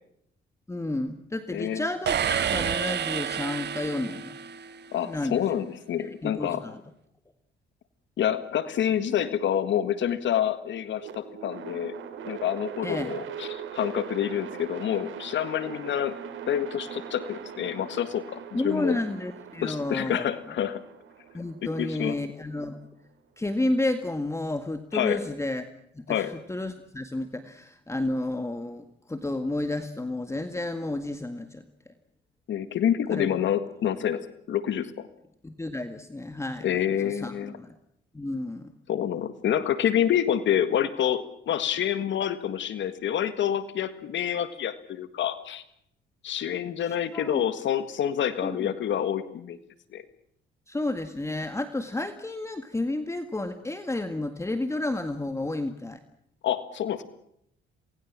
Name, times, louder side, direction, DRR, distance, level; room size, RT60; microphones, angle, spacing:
voice 1, 0.7-4.4 5.0-5.6 6.0-6.8 12.8-13.1 18.5-20.3 21.3-22.8 23.4-25.6 25.9-31.6 33.1-33.3 35.4-37.8 38.1-38.7 46.8-47.5 48.4-48.7 50.7-56.0, left 2 dB, 15° left, 9 dB, 1.9 m, -31 dB
voice 2, 1.5-1.8 4.9-6.6 8.2-11.9 12.2-16.2 16.5-19.0 19.6-20.8 21.8-22.2 24.9-25.2 26.1-26.3 32.5-34.2 34.5-35.1 36.6-37.5 38.9-45.6 46.2-49.6 49.9-50.0 56.4-57.0, left 10 dB, 70° left, 12 dB, 1.8 m, -27 dB
sound 1, 2.1-4.9, right 8 dB, 60° right, 1.5 m, -29 dB
sound 2, 11.0-23.1, right 8 dB, 75° right, 4.0 m, -41 dB
28.0 x 20.0 x 7.5 m, 0.72 s
cardioid pair, 90°, 20 cm